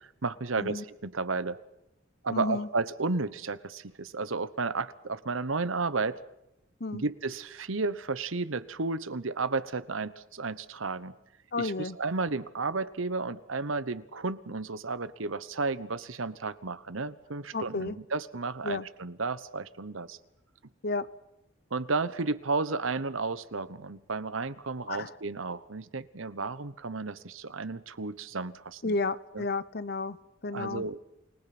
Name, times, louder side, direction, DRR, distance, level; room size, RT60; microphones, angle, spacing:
voice 1, 0.2-1.6 2.2-6.2 6.9-11.1 11.6-20.2 21.7-28.9 29.3-29.4 30.5-31.0, right 3 dB, 80° right, 15 dB, 1.1 m, -33 dB
voice 2, 2.3-2.7 6.8-7.0 11.5-12.0 17.5-18.0 18.6-18.9 20.8-21.1 24.9-25.1 28.8-30.2 30.4-30.8, left 3 dB, 50° left, 16 dB, 0.9 m, -32 dB
29.5 x 20.0 x 6.1 m, 0.83 s
head